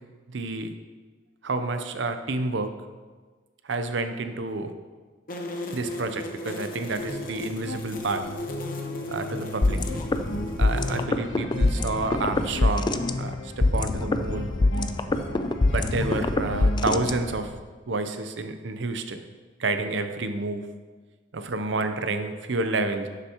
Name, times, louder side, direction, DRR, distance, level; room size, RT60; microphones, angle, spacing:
voice 1, 0.3-0.7 1.4-2.7 3.7-4.7 5.7-8.2 9.1-9.8 10.6-14.5 15.7-17.5 17.9-19.2 19.6-20.6 21.3-23.1, right 3 dB, 65° right, 8 dB, 0.7 m, -29 dB
sound 1, 5.3-11.0, left 1 dB, 45° left, 0.9 m, -36 dB
sound 2, 6.8-17.0, left 2 dB, 90° left, 1.2 m, -37 dB
sound 3, 9.6-17.6, left 2 dB, 25° left, 0.3 m, -25 dB
11.5 x 6.8 x 3.0 m, 1.4 s
head